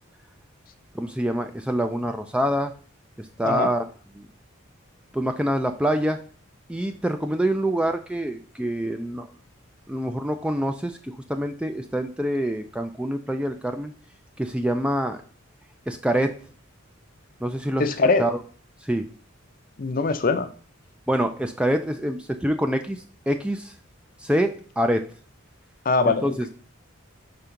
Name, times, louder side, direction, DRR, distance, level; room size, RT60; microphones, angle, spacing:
voice 1, 0.9-2.7 3.2-3.8 4.2-4.3 5.1-6.2 6.7-9.3 9.9-13.9 14.4-15.2 15.9-16.3 17.4-17.8 18.2-18.4 18.8-19.1 21.1-23.7 24.2-25.0 26.0-26.3, equal, 5° right, 7 dB, 0.3 m, -25 dB
voice 2, 17.8-18.2 19.8-20.5 25.8-26.3, left 3 dB, 40° left, 9 dB, 0.6 m, -21 dB
5.2 x 3.6 x 5.7 m, 0.42 s
head